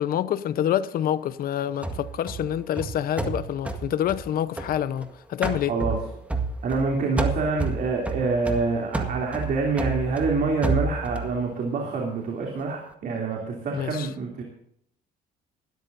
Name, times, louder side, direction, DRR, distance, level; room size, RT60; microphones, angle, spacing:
voice 1, 0.0-5.8 13.7-14.1, left 10 dB, 60° left, 0.9 m, -27 dB
sound 1, 1.8-5.1 5.4-6.9 7.2-11.3, right 3 dB, 10° right, 1.8 m, -30 dB
voice 2, 6.6-14.4, right 4 dB, 55° right, 3.2 m, -26 dB
19.0 x 13.0 x 2.7 m
cardioid pair, 110°, 17 cm